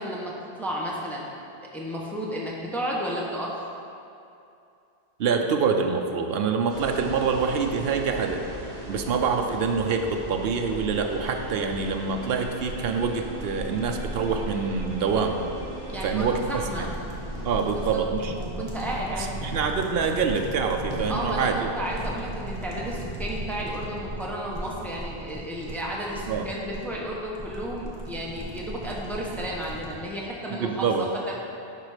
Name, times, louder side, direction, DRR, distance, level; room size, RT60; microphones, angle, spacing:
voice 1, 0.0-1.3 1.7-3.5 15.9-16.9 17.7-18.0 18.3-19.5 21.1-31.4, equal, ahead, -4 dB, 1.0 m, -33 dB
voice 2, 5.2-8.4 8.9-15.5 16.0-16.4 17.4-18.6 19.2-21.7 26.3-26.5 30.5-31.1, right 5 dB, 65° right, 4 dB, 0.9 m, -26 dB
sound 1, 6.7-18.0, right 1 dB, 85° right, 2.3 m, -40 dB
sound 2, 10.7-30.0, right 1 dB, 25° right, 1.3 m, -37 dB
sound 3, 11.0-16.8, right 1 dB, 85° left, 1.8 m, -44 dB
11.5 x 4.1 x 5.0 m, 2.6 s
omnidirectional pair, 1.1 m